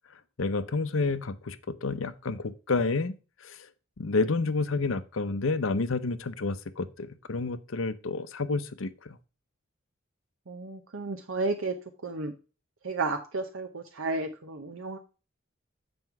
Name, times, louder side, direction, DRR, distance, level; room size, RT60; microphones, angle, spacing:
voice 1, 0.4-3.7 4.0-9.2, left 3 dB, 75° left, 0.7 m, -30 dB
voice 2, 10.5-11.7 12.0-12.3 12.8-15.0, right 3 dB, 75° right, 0.8 m, -32 dB
7.8 x 5.2 x 4.6 m
head